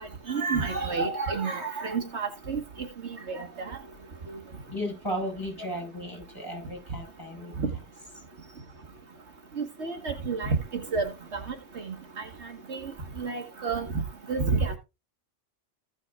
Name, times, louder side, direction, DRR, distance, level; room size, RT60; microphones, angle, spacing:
voice 1, 0.3-2.6 3.3-3.5 7.6-7.7 9.6-10.6 10.9-11.1 12.7-12.9 13.2-13.9 14.3-14.8, right 4 dB, 65° right, 1.6 m, -29 dB
voice 2, 4.7-7.5, equal, 15° left, 5.3 m, -35 dB
15.0 x 6.1 x 3.5 m
omnidirectional pair, 1.2 m